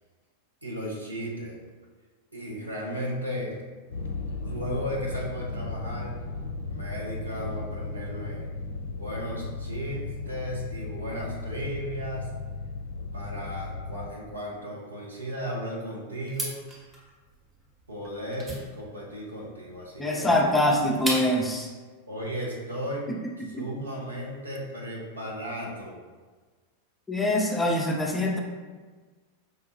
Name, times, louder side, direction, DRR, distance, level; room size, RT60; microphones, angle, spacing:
voice 1, 0.6-1.6 2.3-3.6 4.5-6.2 6.7-8.5 9.0-12.3 13.1-16.5 17.9-20.4 22.1-23.1 23.6-26.0, equal, 80° right, -3 dB, 0.9 m, -35 dB
sound 1, 3.9-14.1, left 3 dB, 65° left, 0.4 m, -35 dB
sound 2, 16.3-21.6, right 1 dB, 15° right, 1.0 m, -37 dB
voice 2, 20.0-21.7 23.5-23.7 27.1-28.4, left 1 dB, 10° left, 0 dB, 0.5 m, -24 dB
4.9 x 2.2 x 3.0 m, 1.4 s
figure-of-eight pair, 90°, 0 cm